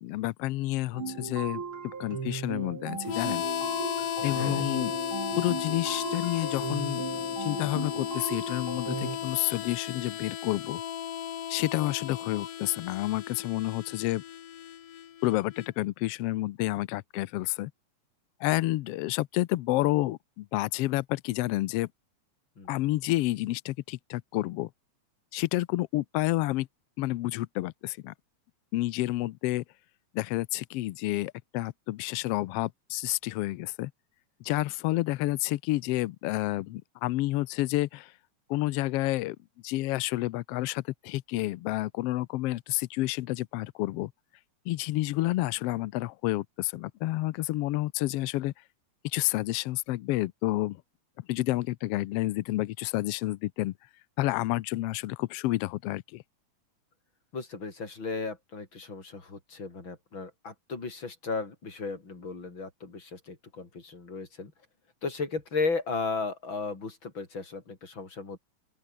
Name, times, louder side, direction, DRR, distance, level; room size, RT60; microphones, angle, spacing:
voice 1, 0.0-1.6 2.0-3.4 4.2-4.9 5.4-10.8 11.5-14.2 15.2-17.7 18.4-21.9 22.7-24.7 25.3-26.7 27.0-28.1 28.7-29.6 30.1-33.9 34.4-38.1 38.5-39.4 39.6-44.1 44.7-48.5 49.1-50.8 51.3-53.7 54.2-56.2, left 17 dB, 85° left, 1.3 m, -29 dB
sound 1, 0.9-9.2, right 5 dB, 45° right, 3.5 m, -37 dB
Harmonica, 3.0-15.7, left 10 dB, 60° left, 2.2 m, -35 dB
voice 2, 4.3-4.7 22.6-22.9 57.3-64.5 65.0-68.4, left 4 dB, 40° left, 5.0 m, -35 dB
open air
omnidirectional pair, 3.4 m